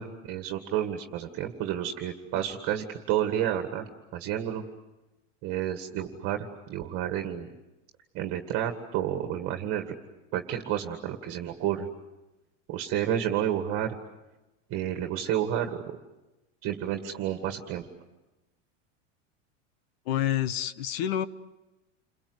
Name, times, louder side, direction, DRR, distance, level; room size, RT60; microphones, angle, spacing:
voice 1, 0.0-4.6 5.4-7.5 8.1-10.0 10.3-11.9 12.7-14.0 14.7-16.0 16.6-17.8, right 11 dB, 40° right, 5 dB, 1.9 m, -30 dB
voice 2, 20.1-21.3, left 11 dB, 55° left, 15 dB, 1.2 m, -28 dB
29.5 x 22.5 x 8.0 m, 1.0 s
supercardioid pair, 155°, 37 cm